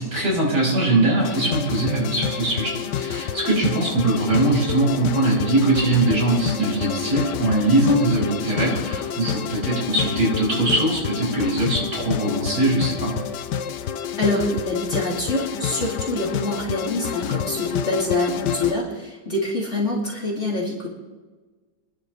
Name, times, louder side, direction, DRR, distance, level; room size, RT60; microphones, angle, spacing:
voice 1, 0.0-13.1, right 2 dB, 60° right, -4 dB, 6.9 m, -21 dB
sound 1, 1.2-18.7, left 9 dB, 70° left, 1.3 m, -29 dB
voice 2, 14.2-20.9, left 2 dB, 35° left, -4 dB, 3.0 m, -25 dB
25.5 x 11.0 x 3.2 m, 1.3 s
omnidirectional pair, 2.1 m